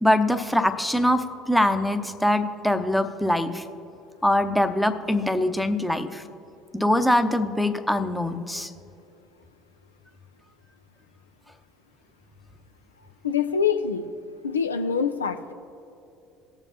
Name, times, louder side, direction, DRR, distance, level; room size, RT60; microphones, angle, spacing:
voice 1, 0.0-3.6 4.2-6.2 6.7-8.7, left 1 dB, ahead, 7 dB, 0.8 m, -23 dB
voice 2, 13.2-14.1 14.4-15.5, left 6 dB, 85° left, 8 dB, 0.3 m, -25 dB
18.5 x 7.1 x 2.8 m, 2.8 s
figure-of-eight pair, 60°, 0 cm